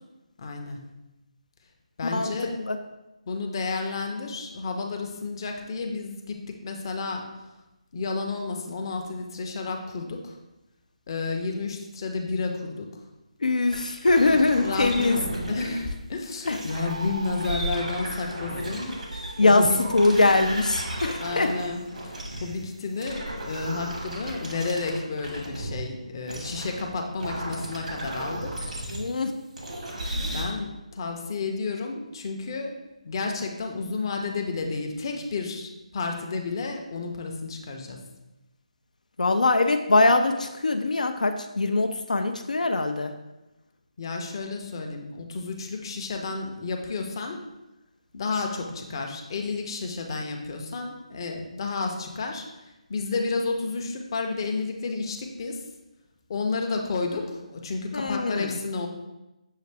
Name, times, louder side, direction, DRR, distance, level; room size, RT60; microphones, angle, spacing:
voice 1, 0.4-0.8 2.0-2.6 3.3-7.2 7.9-10.4 11.1-12.9 14.6-18.9 19.4-19.8 20.0-20.3 21.2-28.5 30.2-30.7 30.9-32.7 33.0-38.0 44.0-47.4 48.1-55.6 56.3-58.9, left 4 dB, 35° left, 3 dB, 0.5 m, -31 dB
voice 2, 2.0-2.3 2.6-2.8 13.4-15.2 16.5-16.6 19.4-19.7 19.9-21.5 28.9-29.3 39.2-43.1 57.9-58.6, left 2 dB, 85° left, 6 dB, 0.4 m, -22 dB
sound 1, 13.7-15.8 16.4-22.6 23.0-25.8 26.3-29.1 29.6-30.4, right 1 dB, 75° right, 1.1 m, -34 dB
6.3 x 2.4 x 3.3 m, 0.99 s
figure-of-eight pair, 160°, 4 cm